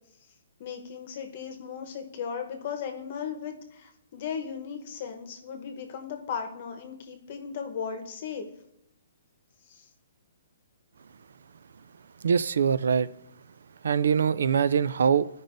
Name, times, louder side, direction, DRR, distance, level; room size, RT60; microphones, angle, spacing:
voice 1, 0.6-8.5 9.7-9.8, left 7 dB, 35° left, 1.0 m, -36 dB
voice 2, 12.2-13.1 13.8-15.3, right 7 dB, 70° right, 0.3 m, -23 dB
14.0 x 5.3 x 2.6 m
hypercardioid pair, 175°, 0 cm